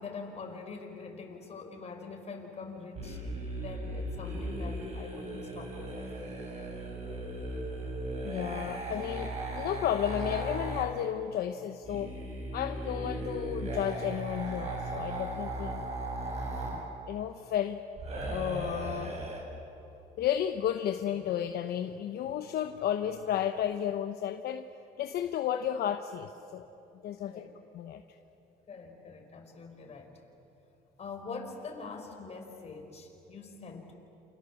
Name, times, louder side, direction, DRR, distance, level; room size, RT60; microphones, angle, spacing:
voice 1, 0.0-3.2 3.6-6.1 27.2-27.5 28.7-30.2 31.0-33.9, left 4 dB, 40° left, 3 dB, 5.2 m, -44 dB
sound 1, 2.9-10.9 11.8-16.8 18.0-19.4, right 1 dB, 40° right, 7.4 m, -37 dB
voice 2, 8.2-12.1 12.5-15.9 17.1-17.8 18.3-19.1 20.2-24.7 25.0-26.7 27.0-27.5 27.7-28.0, left 10 dB, 70° left, 7 dB, 1.1 m, -32 dB
29.0 x 27.5 x 7.3 m, 2.9 s
cardioid pair, 110°, 17 cm